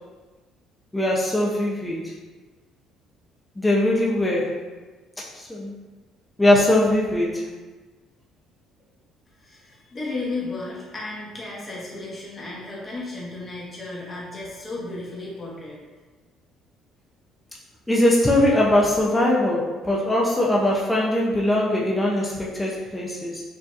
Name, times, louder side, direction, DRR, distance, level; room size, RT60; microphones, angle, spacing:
voice 1, 0.9-2.1 3.6-4.6 5.3-5.7 6.4-7.4 17.9-23.4, left 1 dB, 10° left, -4 dB, 0.5 m, -21 dB
voice 2, 9.4-15.8, left 2 dB, 30° left, -6 dB, 1.2 m, -34 dB
4.5 x 2.7 x 2.4 m, 1.3 s
cardioid pair, 110°, 0 cm